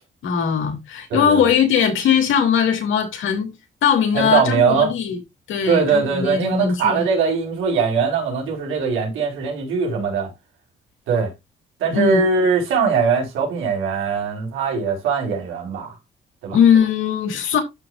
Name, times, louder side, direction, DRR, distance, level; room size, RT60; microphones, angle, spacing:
voice 1, 0.2-3.5 3.8-5.2 5.5-7.1 11.9-12.2 16.5-17.6, left 8 dB, 80° left, 3.3 m, -19 dB
voice 2, 1.1-1.4 4.1-4.9 5.7-10.3 11.1-11.3 11.8-15.9 16.4-16.6, right 5 dB, 90° right, 4.8 m, -21 dB
12.5 x 6.5 x 2.6 m
cardioid pair, 90°, 20 cm